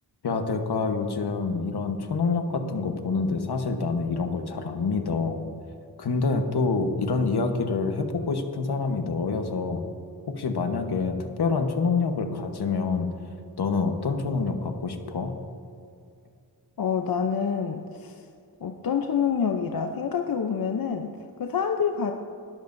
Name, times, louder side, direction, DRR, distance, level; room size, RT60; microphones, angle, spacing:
voice 1, 0.2-5.4 6.0-9.8 10.3-13.1 13.6-15.3, left 4 dB, 80° left, 5 dB, 1.3 m, -27 dB
voice 2, 16.8-18.2 18.6-22.1, left 7 dB, 65° left, 5 dB, 0.7 m, -27 dB
20.0 x 12.5 x 2.7 m, 2.4 s
wide cardioid pair, 90°, 39 cm